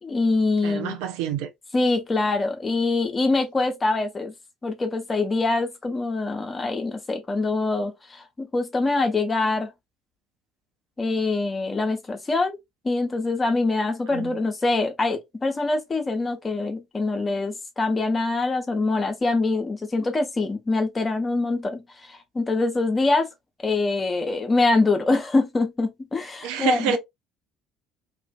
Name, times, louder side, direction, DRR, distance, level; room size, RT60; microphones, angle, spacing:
voice 1, 0.0-1.0 1.7-4.3 4.6-9.7 11.0-12.6 12.8-23.3 23.6-27.0, left 3 dB, 25° left, 0.7 m, -24 dB
voice 2, 0.6-1.5 14.1-14.3 26.4-27.0, right 9 dB, 60° right, 0.4 m, -27 dB
2.4 x 2.2 x 2.4 m
figure-of-eight pair, 55°, 0 cm